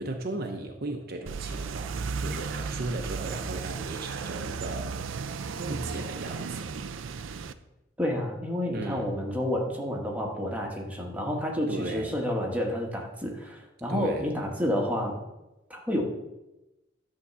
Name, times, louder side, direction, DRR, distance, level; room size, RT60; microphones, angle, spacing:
voice 1, 0.0-5.0 5.6-6.7 8.7-9.1 11.7-12.1 13.9-14.3, right 2 dB, 50° right, 4 dB, 0.8 m, -36 dB
sound 1, 1.3-7.5, right 5 dB, 75° right, 0.5 m, -34 dB
voice 2, 8.0-15.2 15.7-16.0, left 1 dB, 10° right, -1 dB, 1.4 m, -30 dB
11.5 x 3.8 x 6.8 m, 0.98 s
head